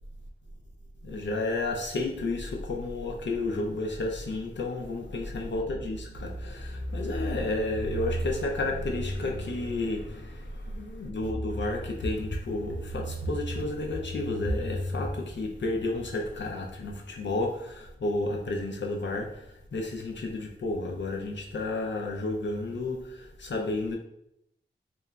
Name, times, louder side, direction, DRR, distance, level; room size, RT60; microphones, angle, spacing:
voice 1, 1.0-24.0, left 2 dB, 65° left, 0.4 m, -31 dB
2.8 x 2.2 x 2.3 m
wide cardioid pair, 50°, 20 cm